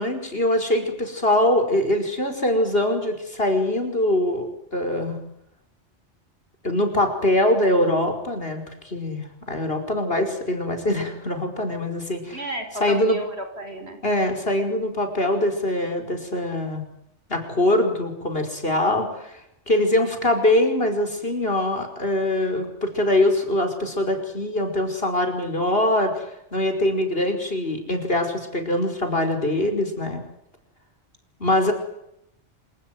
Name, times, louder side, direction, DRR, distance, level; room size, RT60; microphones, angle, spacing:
voice 1, 0.0-5.2 6.6-12.4 12.8-13.2 14.0-16.9 17.3-19.4 19.7-26.2 26.5-30.2 31.4-31.7, left 1 dB, 55° left, 5 dB, 5.5 m, -23 dB
voice 2, 12.3-14.0, right 1 dB, 65° right, 6 dB, 5.4 m, -32 dB
27.5 x 17.5 x 9.7 m, 0.78 s
omnidirectional pair, 1.2 m